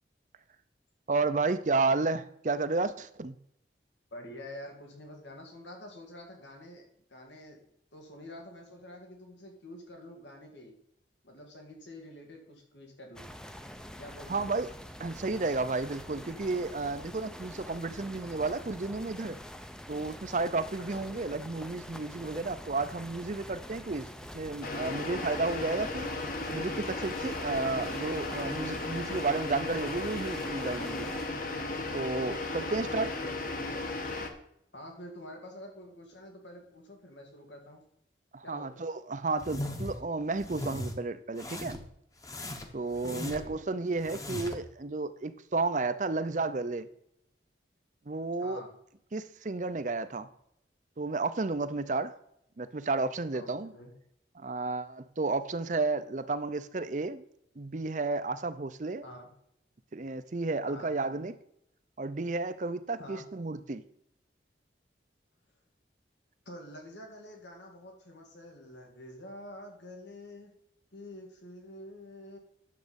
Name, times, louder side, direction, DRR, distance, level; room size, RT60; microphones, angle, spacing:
voice 1, 1.1-3.4 14.3-14.7 15.0-19.4 19.9-24.1 24.3-26.1 26.5-31.1 31.9-33.1 38.3-41.8 42.7-46.9 48.1-48.6 49.1-50.3 51.0-52.2 52.6-53.7 54.3-57.2 57.6-59.1 59.9-61.3 62.0-63.8, right 3 dB, 45° right, 13 dB, 0.6 m, -32 dB
voice 2, 4.1-7.6 7.9-10.8 11.2-13.3 14.0-14.5 21.0-21.2 32.6-32.9 33.2-33.4 34.7-37.8 38.4-38.9 43.0-43.6 48.4-48.7 53.3-53.9 59.0-59.3 60.7-60.9 63.0-63.3 66.5-70.5 70.9-72.4, left 1 dB, 90° left, 2 dB, 2.4 m, -47 dB
sound 1, 13.2-31.3, equal, 5° left, 0.5 m, -45 dB
sound 2, 24.6-34.3, left 2 dB, 50° left, 1.2 m, -35 dB
sound 3, 39.4-40.0 40.4-40.9 41.4-41.9 42.2-43.6 44.0-44.7, left 1 dB, 20° left, 1.0 m, -38 dB
10.0 x 7.5 x 5.3 m, 0.76 s
head